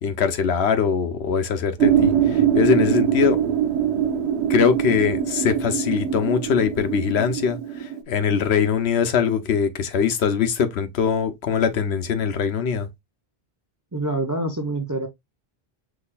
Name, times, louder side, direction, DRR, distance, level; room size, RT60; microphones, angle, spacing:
voice 1, 0.0-3.4 4.5-12.9, left 7 dB, 80° left, 1.0 m, -22 dB
sound 1, 1.8-8.0, right 9 dB, 85° right, 1.0 m, -22 dB
voice 2, 13.9-15.1, right 2 dB, 25° right, 0.4 m, -26 dB
6.0 x 3.2 x 2.3 m
omnidirectional pair, 1.1 m